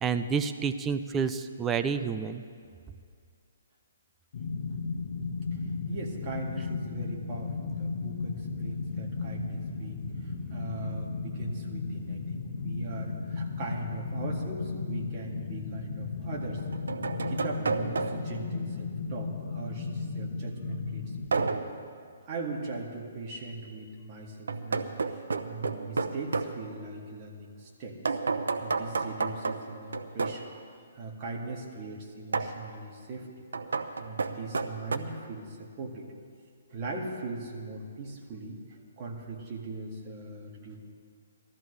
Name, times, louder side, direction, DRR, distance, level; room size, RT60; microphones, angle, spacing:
voice 1, 0.0-2.4, right 6 dB, 15° right, 9 dB, 0.5 m, -29 dB
sound 1, 4.3-21.3, left 4 dB, 55° left, 1.3 m, -35 dB
voice 2, 5.5-16.6 17.1-21.5 22.3-25.2 25.4-30.5 30.9-33.4 34.0-36.1 36.7-40.8, right 3 dB, 30° right, -1 dB, 2.0 m, -40 dB
sound 2, 15.1-15.2 16.4-18.4 21.3-21.8 24.5-26.6 28.0-30.5 32.3-32.6 33.5-35.0, right 4 dB, 90° right, 0.7 m, -31 dB
19.5 x 13.5 x 3.3 m, 2.2 s
hypercardioid pair, 155°, 0 cm